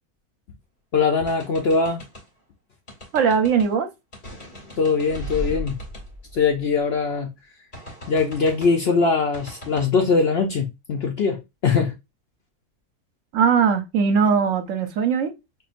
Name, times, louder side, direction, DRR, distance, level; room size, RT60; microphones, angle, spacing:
voice 1, 0.9-2.0 4.8-5.8 6.3-7.3 8.1-11.9, left 4 dB, 60° left, 0.6 m, -21 dB
sound 1, 1.3-2.3 2.9-3.7 4.1-7.0 7.7-8.8 9.3-9.9, left 1 dB, 35° left, 1.3 m, -37 dB
voice 2, 3.1-3.9 13.3-15.3, right 6 dB, 65° right, 1.0 m, -20 dB
5.7 x 2.5 x 2.5 m
omnidirectional pair, 1.6 m